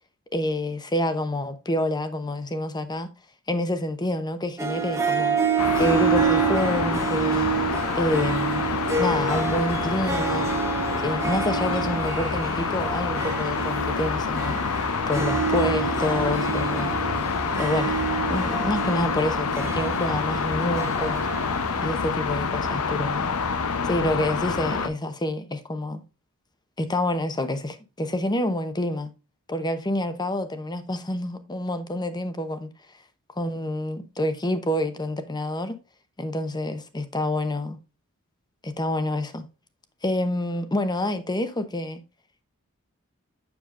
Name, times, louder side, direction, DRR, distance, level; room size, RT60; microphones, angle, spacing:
voice 1, 0.3-3.1 3.5-5.4 5.8-7.5 7.9-8.7 9.0-10.5 11.0-16.9 17.6-18.0 18.3-21.3 21.8-23.3 23.8-26.0 26.8-29.1 29.5-32.7 33.4-35.8 36.2-37.8 38.6-39.5 40.0-42.0, left 1 dB, 20° left, 0.8 m, -27 dB
Harp, 4.6-22.2, right 6 dB, 15° right, 1.2 m, -28 dB
sound 1, 5.6-24.9, left 5 dB, 80° left, 0.8 m, -27 dB
7.1 x 6.9 x 2.4 m
head